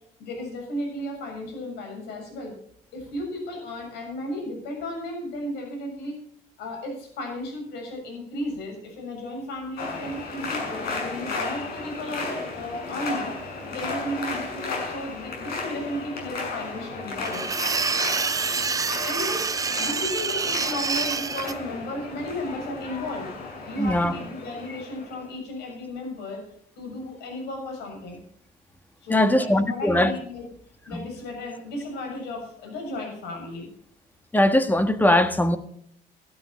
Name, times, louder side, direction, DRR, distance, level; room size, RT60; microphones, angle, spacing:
voice 1, 0.2-2.5 2.9-6.2 6.6-13.3 13.7-17.5 19.0-19.5 19.8-23.3 23.7-26.5 26.8-28.2 29.0-30.5 30.9-33.7, left 1 dB, 80° left, 7.0 m, -34 dB
sound 1, 9.8-25.2, left 3 dB, 65° left, 6.6 m, -34 dB
sound 2, 17.2-21.5, right 5 dB, 20° right, 0.6 m, -27 dB
voice 2, 23.8-24.1 29.1-30.1 30.9-31.0 34.3-35.6, left 1 dB, 10° left, 1.3 m, -20 dB
14.5 x 12.5 x 4.3 m
cardioid pair, 110°, 17 cm